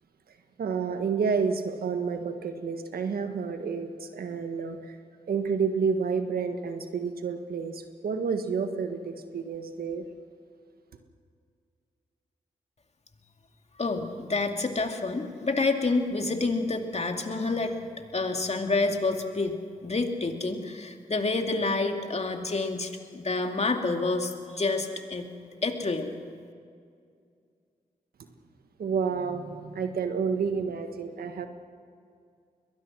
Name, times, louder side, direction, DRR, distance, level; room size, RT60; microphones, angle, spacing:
voice 1, 0.6-5.0 5.3-10.0 28.8-31.5, right 5 dB, 80° right, 7 dB, 1.5 m, -30 dB
voice 2, 13.8-17.8 18.1-25.3 25.6-26.1, left 3 dB, 45° left, 4 dB, 2.5 m, -28 dB
22.0 x 20.0 x 6.3 m, 2.3 s
supercardioid pair, 40°, 15 cm